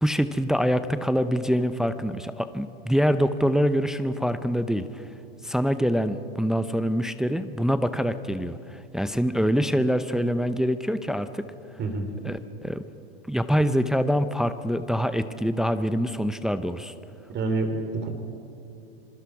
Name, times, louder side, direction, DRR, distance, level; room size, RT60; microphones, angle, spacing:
voice 1, 0.0-5.0 5.4-11.4 12.2-12.8 13.3-16.9, equal, ahead, 11 dB, 0.6 m, -25 dB
voice 2, 17.3-18.1, right 3 dB, 35° right, 5 dB, 3.7 m, -27 dB
27.0 x 21.0 x 4.8 m, 2.7 s
hypercardioid pair, 110°, 31 cm